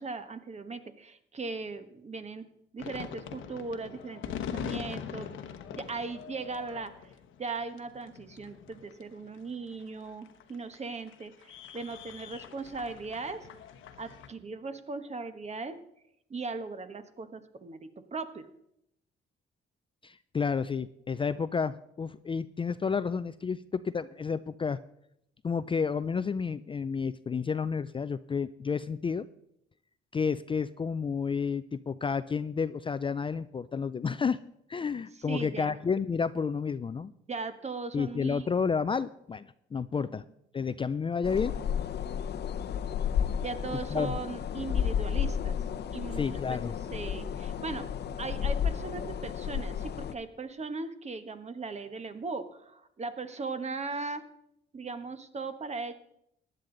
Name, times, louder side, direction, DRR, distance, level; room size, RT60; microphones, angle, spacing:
voice 1, 0.0-2.5 2.7-5.4 5.7-7.1 7.4-13.5 14.0-15.8 16.3-18.5 35.3-35.8 37.3-38.5 43.4-45.5 45.9-46.6 46.9-47.9 48.2-54.2 54.7-55.9, right 4 dB, 35° right, 10 dB, 1.2 m, -38 dB
sound 1, 2.8-14.3, left 8 dB, 85° left, 1.0 m, -42 dB
voice 2, 20.0-24.8 25.4-29.3 30.1-34.4 34.7-37.1 37.9-40.2 40.5-41.5 43.9-44.1 46.1-46.8, left 5 dB, 25° left, 14 dB, 0.4 m, -31 dB
sound 2, 41.2-50.1, left 8 dB, 55° left, 0.8 m, -32 dB
15.5 x 10.5 x 3.9 m, 0.75 s
cardioid pair, 90°, 20 cm